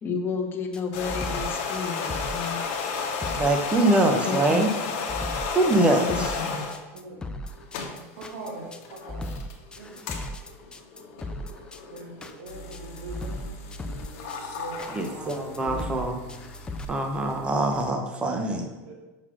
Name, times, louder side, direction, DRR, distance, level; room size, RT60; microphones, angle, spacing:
voice 1, 0.0-2.6 4.2-4.6 6.1-6.7, left 5 dB, 30° left, 3 dB, 1.0 m, -31 dB
sound 1, 0.7-16.8, left 1 dB, 10° left, 0.4 m, -37 dB
sound 2, 0.8-6.8 7.5-17.9, left 5 dB, 65° left, 1.2 m, -34 dB
voice 2, 3.3-4.7 5.5-6.3 14.9-16.2 16.9-18.7, right 2 dB, 15° right, 4 dB, 0.8 m, -23 dB
voice 3, 5.1-5.4 6.0-7.2 7.9-9.3 9.8-10.3 11.9-13.6 13.8-16.0 18.8-18.9, right 2 dB, 75° right, 0 dB, 2.0 m, -42 dB
6.4 x 4.0 x 6.0 m, 1.1 s
supercardioid pair, 140°, 8 cm